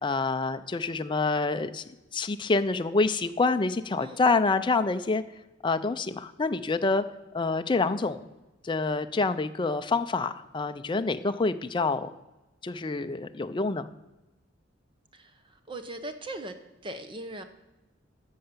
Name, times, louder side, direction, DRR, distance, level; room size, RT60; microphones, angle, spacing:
voice 1, 0.0-1.8 2.1-5.2 5.6-7.0 7.3-8.3 8.6-12.1 12.6-13.9, left 3 dB, 25° left, 10 dB, 0.5 m, -27 dB
voice 2, 15.7-16.5 16.8-17.4, right 1 dB, 25° right, 8 dB, 0.8 m, -38 dB
13.5 x 5.7 x 6.8 m, 1.0 s
head